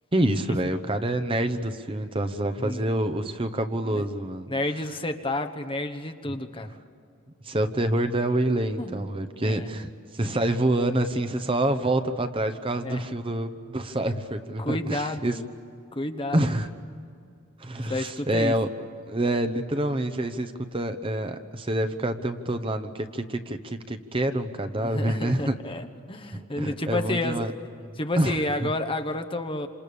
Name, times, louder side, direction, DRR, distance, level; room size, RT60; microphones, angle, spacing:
voice 1, 0.1-4.5 7.4-15.3 16.3-16.7 17.6-18.7 19.1-25.5 26.3-27.5 28.2-28.7, right 1 dB, 25° right, 8 dB, 1.0 m, -27 dB
voice 2, 4.5-6.8 8.8-9.1 9.4-9.7 12.8-13.0 14.6-15.5 15.9-16.4 17.9-18.5 24.7-27.5 27.9-29.7, left 1 dB, 25° left, 7 dB, 1.2 m, -30 dB
28.0 x 27.5 x 7.0 m, 2.4 s
head